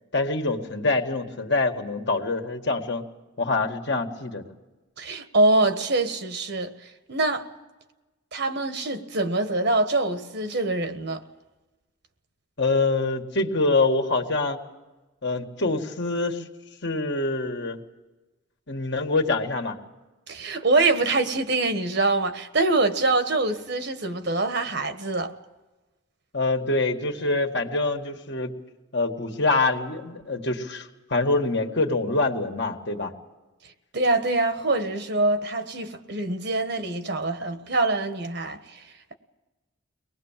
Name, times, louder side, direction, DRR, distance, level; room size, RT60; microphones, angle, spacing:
voice 1, 0.1-3.0 3.4-4.4 12.6-14.6 15.2-16.5 16.8-17.8 18.7-19.8 26.3-28.5 28.9-33.1, left 3 dB, 55° left, 2.0 m, -25 dB
voice 2, 5.0-7.5 8.3-11.2 20.3-25.3 33.6-39.1, right 2 dB, 55° right, 1.4 m, -25 dB
24.0 x 19.5 x 7.5 m
head